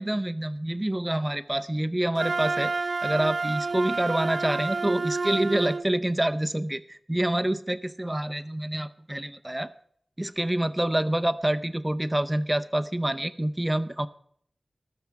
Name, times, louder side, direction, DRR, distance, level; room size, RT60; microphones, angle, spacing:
voice 1, 0.0-2.7 3.0-9.7 10.2-14.1, right 1 dB, 15° right, 11 dB, 0.6 m, -27 dB
Wind instrument woodwind instrument, 2.1-5.9, right 3 dB, 65° right, 0.4 m, -29 dB
20.5 x 7.0 x 4.7 m, 0.65 s
cardioid pair, 50°, 0 cm